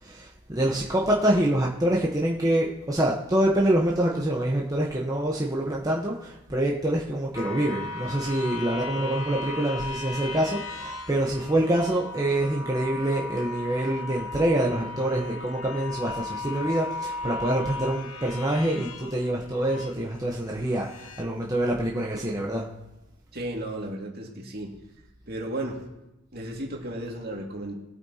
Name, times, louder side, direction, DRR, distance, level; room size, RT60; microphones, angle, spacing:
voice 1, 0.0-22.7, right 1 dB, 20° right, -3 dB, 1.1 m, -26 dB
sound 1, 7.3-20.0 20.6-21.2, left 3 dB, 85° left, 1.0 m, -37 dB
voice 2, 23.3-24.7 25.3-25.8 26.3-27.7, right 1 dB, 50° right, 0 dB, 2.3 m, -34 dB
21.5 x 8.6 x 2.9 m, 0.96 s
head